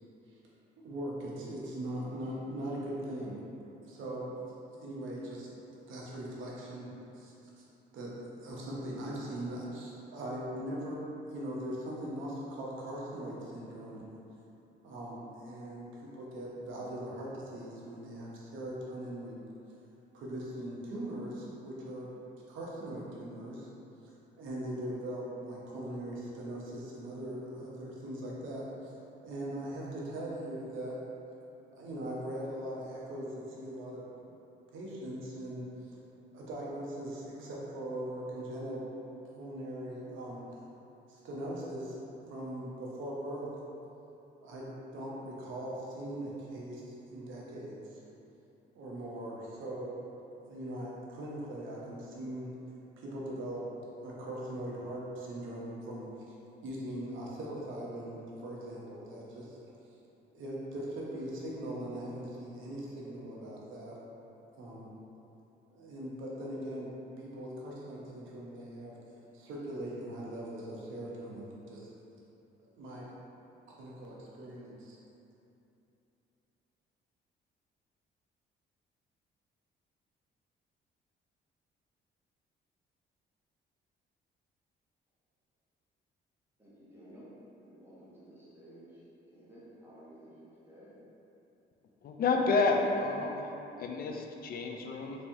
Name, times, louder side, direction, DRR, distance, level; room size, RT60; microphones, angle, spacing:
voice 1, 0.8-3.4 3.8-4.3 4.8-7.7 7.9-8.1 8.4-11.0 11.3-14.1 14.8-19.4 20.1-22.1 22.5-23.7 24.4-28.9 29.2-31.0 31.8-34.4 34.7-36.0 36.3-38.9 39.2-40.5 41.1-43.6 44.4-48.0 48.7-50.1 50.5-52.5 53.0-53.7 54.0-56.1 56.6-59.6 60.3-64.0 64.6-64.9 65.7-66.9 67.2-68.9 69.3-71.9 72.8-73.1 73.8-75.0, right 1 dB, 80° right, -5 dB, 0.8 m, -40 dB
voice 2, 86.6-87.3 87.6-90.9, right 1 dB, 10° right, -10 dB, 1.2 m, -54 dB
voice 3, 92.0-93.5 93.8-95.3, left 3 dB, 50° left, 2 dB, 0.4 m, -30 dB
3.4 x 3.1 x 2.7 m, 2.9 s
cardioid pair, 90°, 20 cm